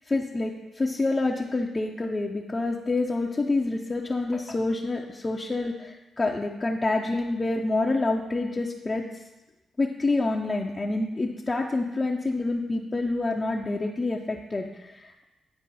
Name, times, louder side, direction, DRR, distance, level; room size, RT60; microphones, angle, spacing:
voice 1, 0.1-9.0 9.8-15.2, left 2 dB, 30° left, -1 dB, 0.7 m, -27 dB
10.0 x 4.4 x 4.2 m, 1.0 s
hypercardioid pair, 45°, 0 cm